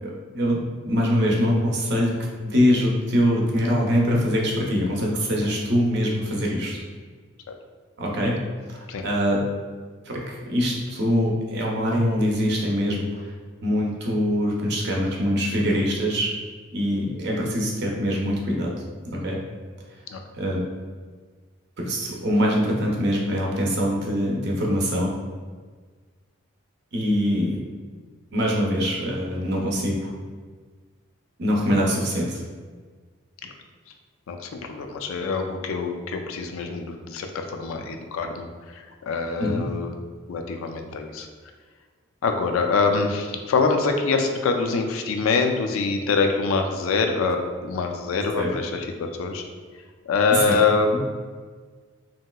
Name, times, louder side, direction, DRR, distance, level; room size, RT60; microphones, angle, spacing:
voice 1, 0.0-2.1 2.4-6.8 8.0-8.4 8.7-9.4 10.1-13.3 13.6-16.3 16.7-18.7 19.1-19.4 20.3-20.6 21.8-25.1 26.9-27.6 28.3-30.1 31.4-32.4 39.4-39.6 48.4-48.5 50.3-50.6, equal, 50° right, -2 dB, 0.5 m, -23 dB
voice 2, 34.3-38.5 39.1-39.9 40.3-41.3 42.2-47.4 47.6-48.9 49.2-49.4 50.1-50.9, left 4 dB, 80° left, 4 dB, 0.3 m, -24 dB
3.1 x 2.8 x 2.2 m, 1.5 s
head